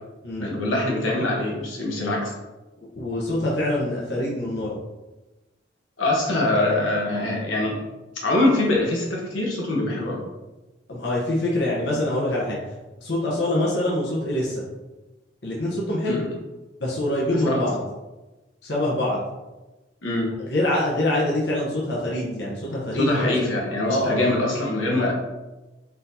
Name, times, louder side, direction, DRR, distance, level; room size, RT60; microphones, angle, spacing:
voice 1, 0.4-2.3 6.0-7.8 8.2-10.2 16.1-16.3 17.4-17.6 20.0-20.3 22.9-25.1, left 2 dB, 90° left, -2 dB, 1.1 m, -23 dB
voice 2, 3.0-4.8 10.9-12.6 13.0-14.6 15.4-16.2 16.8-17.8 18.6-19.2 20.4-23.5 23.9-24.2, left 1 dB, 60° left, -5 dB, 0.9 m, -25 dB
4.2 x 4.0 x 2.7 m, 1.1 s
head